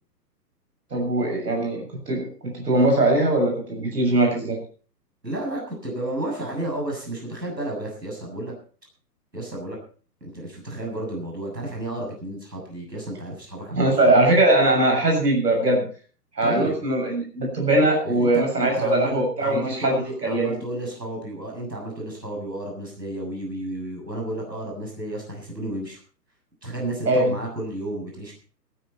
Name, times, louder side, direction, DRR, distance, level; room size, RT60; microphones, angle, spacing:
voice 1, 0.9-4.6 13.7-15.8 16.4-20.6 27.1-27.3, right 1 dB, 75° right, 1 dB, 7.2 m, -21 dB
voice 2, 5.2-8.5 9.3-9.8 10.2-14.1 16.4-16.8 18.0-26.0 26.6-28.4, right 1 dB, 90° right, 0 dB, 7.3 m, -32 dB
15.5 x 14.5 x 4.3 m, 0.41 s
figure-of-eight pair, 120°, 49 cm